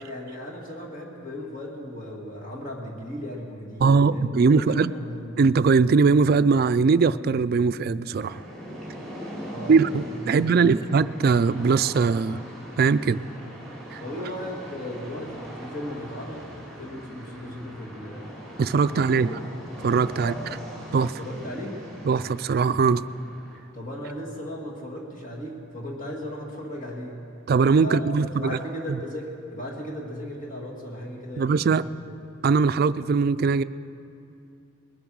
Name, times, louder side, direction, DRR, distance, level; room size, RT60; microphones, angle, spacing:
voice 1, 0.0-5.4 9.4-10.8 14.0-16.5 16.8-18.3 18.9-19.4 20.1-20.6 21.2-21.8 23.7-27.2 27.8-32.0, equal, 40° left, -2 dB, 1.9 m, -36 dB
voice 2, 3.8-4.9 5.4-8.4 9.7-12.4 12.8-13.2 13.9-14.0 18.6-19.3 19.8-20.3 20.9-21.2 22.0-23.0 27.5-28.6 31.4-31.9 32.4-33.6, right 5 dB, 50° right, 14 dB, 0.3 m, -21 dB
sound 1, 8.1-23.6, equal, 5° left, 3.1 m, -41 dB
20.5 x 8.9 x 6.2 m, 2.6 s
head